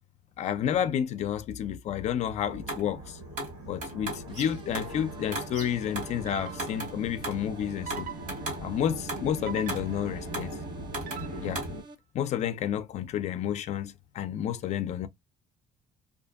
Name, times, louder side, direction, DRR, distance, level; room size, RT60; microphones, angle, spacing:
voice 1, 0.4-3.2 3.7-8.1 8.6-10.5 11.4-11.6 12.1-15.1, left 9 dB, 50° left, 0.4 m, -30 dB
sound 1, 2.4-11.8, right 2 dB, 65° right, 1.4 m, -37 dB
sound 2, 4.3-12.0, right 2 dB, 35° right, 0.5 m, -50 dB
sound 3, 5.1-5.4 6.3-7.0 7.9-8.7 9.5-10.3 11.1-11.7, right 10 dB, 85° right, 0.6 m, -43 dB
2.6 x 2.5 x 2.4 m
cardioid pair, 140°, 14 cm